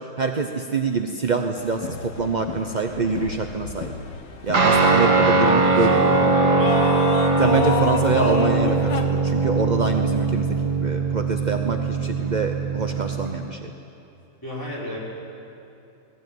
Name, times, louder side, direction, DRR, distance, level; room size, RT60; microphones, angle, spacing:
voice 1, 0.0-3.9 4.4-6.1 7.4-13.7, right 4 dB, 50° right, 5 dB, 0.5 m, -25 dB
sound 1, 1.6-9.0, left 5 dB, 75° left, 1.9 m, -31 dB
Guitar, 4.5-13.3, right 3 dB, 65° right, 2.2 m, -21 dB
voice 2, 5.2-6.7 14.4-15.0, equal, 10° left, -6 dB, 5.3 m, -33 dB
20.0 x 15.5 x 9.3 m, 2.8 s
omnidirectional pair, 1.9 m